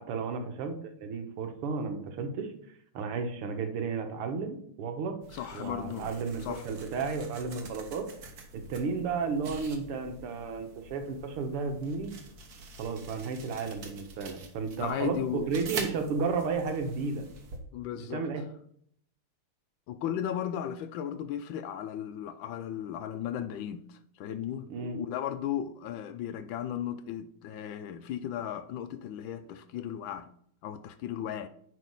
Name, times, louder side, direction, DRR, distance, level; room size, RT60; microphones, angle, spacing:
voice 1, 0.0-2.5 2.9-5.2 5.5-8.1 8.5-12.1 12.8-17.3 18.1-18.4 24.7-25.0, right 5 dB, 85° right, 2.0 m, -33 dB
sound 1, 5.2-17.6, right 3 dB, 50° right, 1.4 m, -45 dB
voice 2, 5.3-6.1 6.4-6.7 14.8-15.5 17.7-18.4 19.9-30.3 30.6-31.5, left 10 dB, 75° left, 1.2 m, -36 dB
9.5 x 4.1 x 5.4 m
omnidirectional pair, 2.4 m